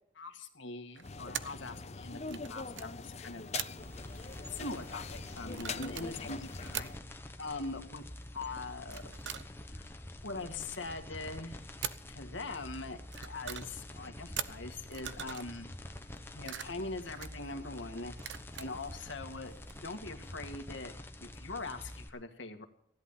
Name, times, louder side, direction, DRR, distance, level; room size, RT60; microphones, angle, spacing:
voice 1, 0.2-3.5 4.5-6.9 7.4-8.0 8.3-9.1 9.7-9.9 10.2-11.6 12.1-15.7 16.3-18.1 18.6-19.5 19.8-20.9 21.2-22.6, left 3 dB, 80° left, 5 dB, 1.9 m, -42 dB
sound 1, 0.9-1.7 2.2-2.9 3.5-3.9 5.4-6.9 8.8-9.9 11.8-12.1 12.9-13.8 14.4-15.5 16.0-17.5 18.2-19.1 19.4-19.8, right 9 dB, 70° right, 0.8 m, -42 dB
sound 2, 1.0-7.0, left 4 dB, 35° left, 0.6 m, -43 dB
sound 3, 3.8-22.1, left 1 dB, 10° left, 1.1 m, -47 dB
16.0 x 11.0 x 5.7 m, 0.68 s
head